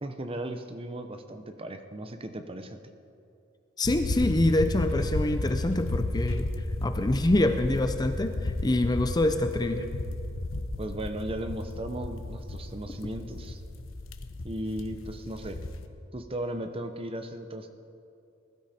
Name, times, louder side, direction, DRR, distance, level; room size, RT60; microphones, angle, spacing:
voice 1, 0.0-2.8 10.8-13.6 14.4-15.6 16.1-17.7, right 1 dB, 25° right, 7 dB, 0.8 m, -36 dB
sound 1, 3.8-15.9, left 2 dB, 75° left, 0.9 m, -33 dB
voice 2, 3.8-6.5 6.8-9.9, left 1 dB, 20° left, 8 dB, 0.5 m, -26 dB
20.0 x 12.5 x 4.4 m, 2.6 s
head